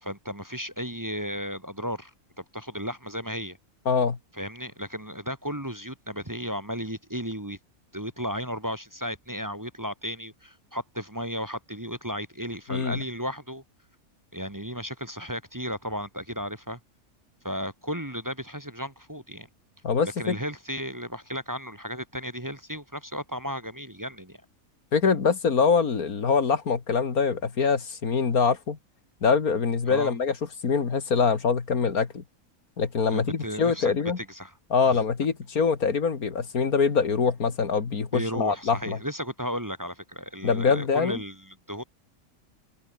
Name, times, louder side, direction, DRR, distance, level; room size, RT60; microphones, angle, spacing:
voice 1, 0.0-2.1 2.4-3.6 4.3-7.6 7.9-13.6 14.3-16.8 17.4-19.5 20.2-24.4 29.9-30.1 33.1-34.5 34.8-35.0 38.1-41.8, equal, 15° right, 1.8 m, -34 dB
voice 2, 3.9-4.2 12.7-13.0 19.8-20.4 24.9-28.8 29.2-30.3 30.6-32.2 32.8-34.2 34.7-39.0 40.4-41.2, left 5 dB, 80° left, 2.5 m, -24 dB
omnidirectional pair, 1.5 m